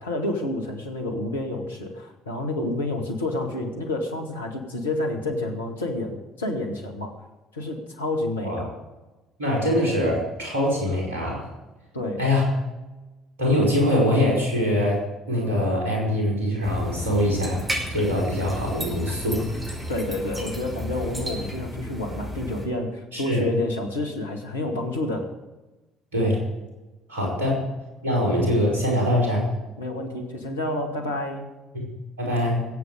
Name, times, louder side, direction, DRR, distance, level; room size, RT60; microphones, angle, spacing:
voice 1, 0.0-7.2 7.5-8.7 11.9-12.2 19.9-25.3 29.8-31.5, left 2 dB, 80° left, 2 dB, 1.8 m, -29 dB
voice 2, 8.4-8.7 9.4-11.5 12.2-12.5 13.4-15.0 15.3-17.6 17.9-19.4 23.1-23.4 26.1-26.4 27.1-27.7 28.0-29.5 31.7-31.9 32.2-32.7, left 1 dB, 75° right, -3 dB, 5.2 m, -23 dB
sound 1, 16.6-22.6, equal, 20° right, 5.4 m, -33 dB
22.0 x 8.5 x 5.1 m, 1.1 s
figure-of-eight pair, 50°, 0 cm